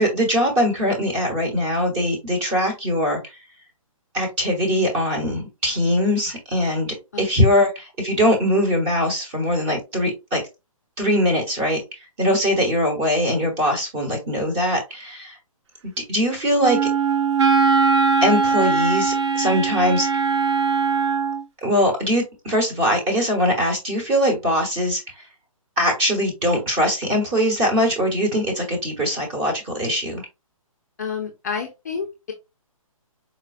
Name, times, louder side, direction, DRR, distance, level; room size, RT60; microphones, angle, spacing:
voice 1, 0.0-3.2 4.1-10.4 11.0-11.8 12.2-15.4 15.8-16.8 18.2-20.1 21.6-25.0 25.8-30.2, equal, 20° right, 1 dB, 1.0 m, -21 dB
Wind instrument woodwind instrument, 16.6-21.4, right 5 dB, 50° right, 0.5 m, -20 dB
voice 2, 31.0-32.3, left 6 dB, 30° left, 3 dB, 0.4 m, -29 dB
4.1 x 2.1 x 2.4 m, 0.25 s
hypercardioid pair, 165°, 18 cm